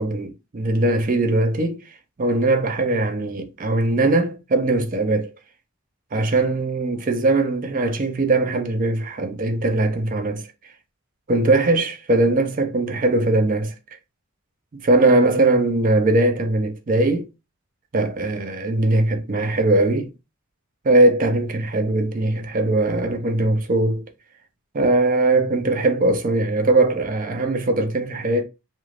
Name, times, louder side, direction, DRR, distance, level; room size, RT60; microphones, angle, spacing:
voice 1, 0.0-1.8 2.2-5.3 6.1-10.5 11.3-13.7 14.8-17.3 17.9-20.1 20.8-24.0 24.7-28.4, right 2 dB, 35° right, 0.4 m, -20 dB
2.4 x 2.2 x 3.1 m
head